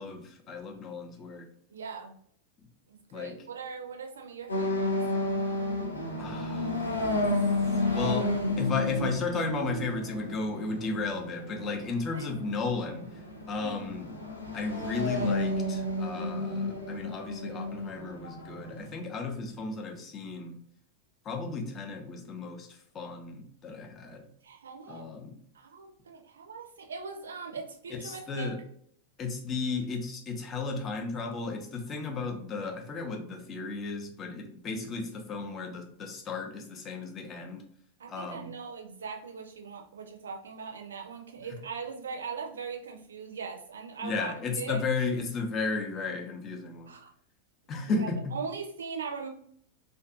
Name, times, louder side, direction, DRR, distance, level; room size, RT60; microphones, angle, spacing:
voice 1, 0.0-1.5 3.1-3.4 6.2-6.8 7.4-14.1 14.5-20.6 21.2-24.3 24.9-25.4 27.9-28.6 29.2-37.6 38.1-38.5 44.0-46.9 47.7-48.4, left 4 dB, 25° left, 2 dB, 0.6 m, -34 dB
voice 2, 1.7-2.2 2.9-4.9 12.1-12.3 13.6-13.8 24.4-25.1 25.5-28.5 38.0-44.8 46.9-47.1 47.9-49.3, right 5 dB, 70° right, 2 dB, 0.5 m, -40 dB
sound 1, 4.5-18.9, left 1 dB, 85° left, 0.5 m, -32 dB
2.5 x 2.3 x 2.5 m, 0.65 s
figure-of-eight pair, 90°, 0 cm